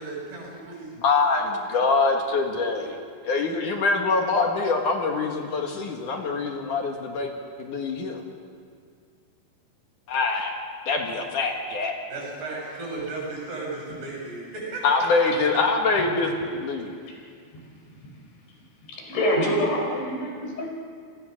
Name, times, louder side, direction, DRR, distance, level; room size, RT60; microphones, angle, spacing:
voice 1, 0.0-0.9 12.1-15.1, right 3 dB, 60° right, -2 dB, 8.6 m, -35 dB
voice 2, 1.0-3.0 3.2-7.3 7.6-8.2 10.1-10.5 10.9-12.0 14.8-17.0 20.6-20.7, left 4 dB, 55° left, 2 dB, 2.6 m, -24 dB
voice 3, 17.5-18.2 18.9-20.7, equal, 80° left, 0 dB, 7.1 m, -27 dB
29.5 x 20.0 x 6.5 m, 2.2 s
omnidirectional pair, 5.2 m